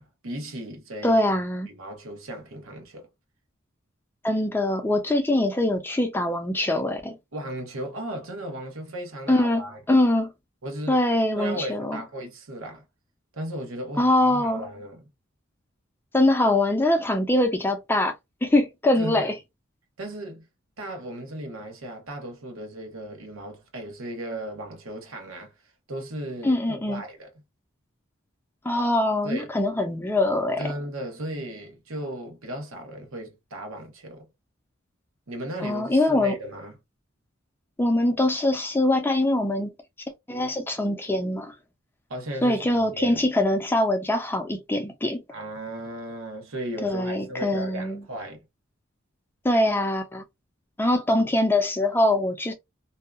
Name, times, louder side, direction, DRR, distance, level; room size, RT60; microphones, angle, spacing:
voice 1, 0.0-1.2 1.7-3.1 7.3-9.8 10.6-11.0 11.3-12.8 13.3-15.0 19.0-19.3 20.0-20.4 20.8-25.5 25.9-27.3 29.2-29.5 30.6-34.3 35.3-36.8 42.1-43.3 45.3-48.4, right 1 dB, 85° right, 1.0 m, -36 dB
voice 2, 1.0-1.7 4.2-7.2 9.3-9.6 9.9-10.3 10.9-12.0 14.0-14.6 16.1-18.1 18.4-19.3 26.4-27.0 28.6-30.6 35.6-36.4 37.8-39.7 40.3-41.5 42.4-45.2 46.8-48.0 49.4-50.2 50.8-52.5, left 1 dB, 10° left, 0.4 m, -23 dB
2.7 x 2.3 x 2.3 m
head